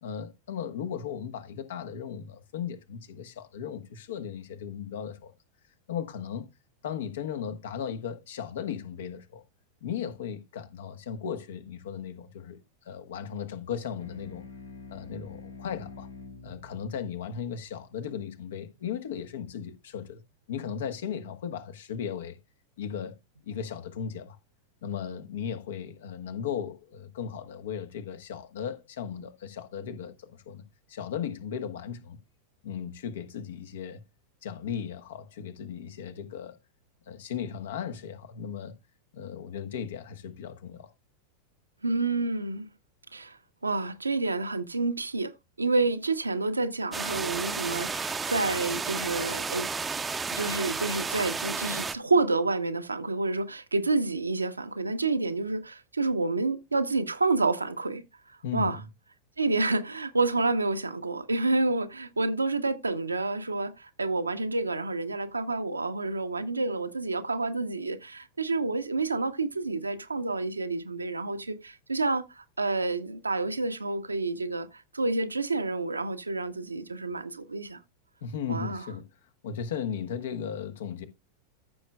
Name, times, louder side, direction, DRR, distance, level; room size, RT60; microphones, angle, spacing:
voice 1, 0.0-5.3 5.9-6.5 6.8-9.4 9.8-12.6 12.8-14.4 14.9-16.1 16.4-20.2 20.5-22.4 22.8-23.2 23.5-24.4 24.8-30.6 30.9-32.2 32.6-34.0 34.4-36.6 37.1-38.7 39.1-40.9 58.4-58.8 78.2-79.0 79.4-81.1, left 7 dB, 60° left, 1.2 m, -36 dB
sound 1, 14.0-18.8, left 4 dB, 75° left, 2.5 m, -48 dB
voice 2, 41.8-42.7 43.1-45.3 45.6-49.7 50.3-58.0 58.5-58.8 59.4-77.8 78.5-78.8, right 3 dB, 80° right, 0.9 m, -29 dB
sound 2, 46.9-52.0, right 5 dB, 15° right, 0.7 m, -32 dB
14.5 x 6.5 x 2.3 m
figure-of-eight pair, 90°, 0 cm